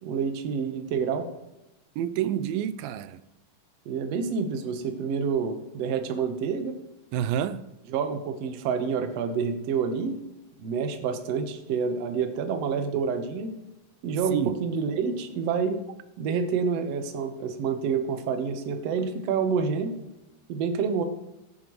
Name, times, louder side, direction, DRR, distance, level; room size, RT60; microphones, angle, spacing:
voice 1, 0.0-1.3 3.9-6.7 7.9-10.2 10.6-13.5 14.0-15.8 16.2-20.0 20.5-21.0, right 6 dB, 60° right, 1.8 m, -28 dB
voice 2, 2.0-3.2 7.1-7.7 14.3-14.6, right 10 dB, 85° right, 2.3 m, -28 dB
18.0 x 8.8 x 3.1 m
omnidirectional pair, 4.0 m